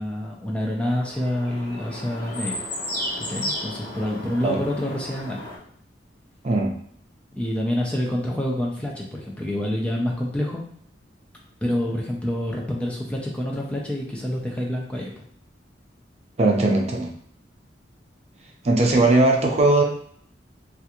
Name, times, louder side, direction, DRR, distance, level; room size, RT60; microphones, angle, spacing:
voice 1, 0.0-2.6 3.3-5.4 7.3-10.6 11.6-15.1 18.8-18.9, left 1 dB, 5° left, -2 dB, 0.5 m, -27 dB
sound 1, 0.8-5.6, left 1 dB, 55° left, 1.1 m, -33 dB
voice 2, 16.4-17.1 18.6-19.8, right 2 dB, 35° right, 0 dB, 0.6 m, -19 dB
3.4 x 2.4 x 2.9 m, 0.63 s
head